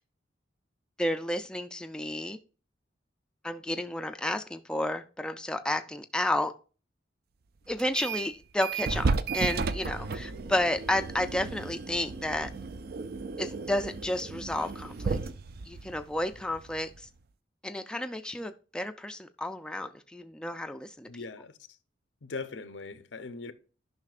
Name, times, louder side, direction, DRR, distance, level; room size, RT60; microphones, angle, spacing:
voice 1, 1.0-2.4 3.4-6.5 7.7-12.5 13.4-15.2 15.7-17.1 17.6-21.1, left 1 dB, 5° left, 0.4 m, -31 dB
sound 1, 7.8-8.3 8.6-17.1, right 4 dB, 55° right, 0.4 m, -34 dB
voice 2, 21.1-21.6 22.2-23.5, left 4 dB, 90° left, 0.8 m, -40 dB
10.5 x 5.6 x 2.4 m
head